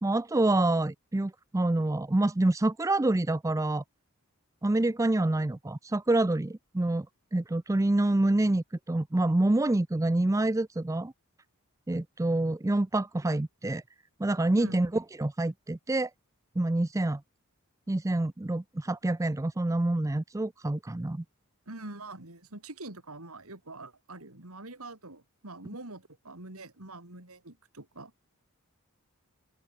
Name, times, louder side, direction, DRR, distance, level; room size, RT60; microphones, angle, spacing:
voice 1, 0.0-3.8 4.6-7.1 7.3-11.1 11.9-13.8 14.2-16.1 16.6-17.2 17.9-21.2, right 2 dB, 15° right, 0.4 m, -27 dB
voice 2, 21.7-28.1, right 2 dB, 75° right, 4.0 m, -44 dB
open air
head